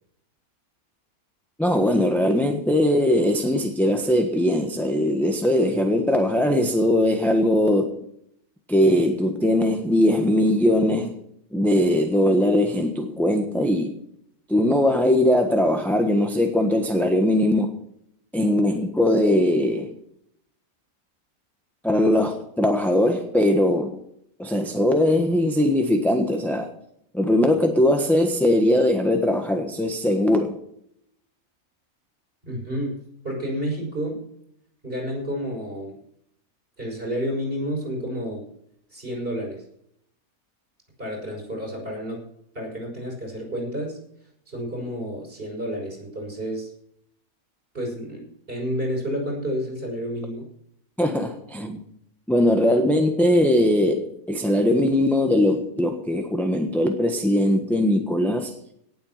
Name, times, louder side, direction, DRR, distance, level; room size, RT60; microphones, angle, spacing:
voice 1, 1.6-8.0 8.7-11.2 11.5-14.0 14.5-17.7 18.3-19.9 21.8-24.0 24.4-26.7 27.1-30.6 51.0-51.8 52.3-58.5, left 1 dB, ahead, 1.2 m, -20 dB
voice 2, 32.4-33.0 33.2-34.2 34.8-36.0 36.8-38.4 38.9-39.6 41.0-42.2 42.5-44.0 44.5-46.7 47.7-50.5, equal, 40° right, 6.2 m, -30 dB
18.0 x 7.9 x 5.8 m
omnidirectional pair, 1.5 m